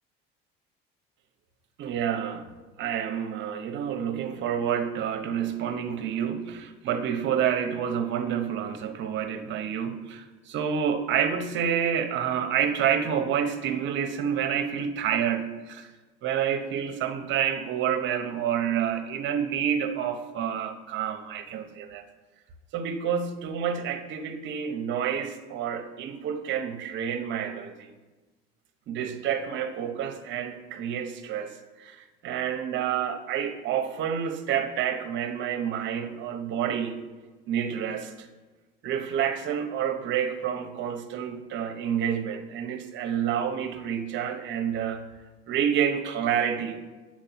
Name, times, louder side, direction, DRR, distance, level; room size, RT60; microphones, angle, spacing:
voice 1, 1.8-2.5 2.8-15.9 16.2-22.0 22.7-27.9 28.9-37.0 37.5-38.3 38.8-45.0 45.5-46.8, right 8 dB, 60° right, 8 dB, 0.9 m, -29 dB
7.6 x 4.5 x 5.8 m, 1.3 s
supercardioid pair, 80°, 21 cm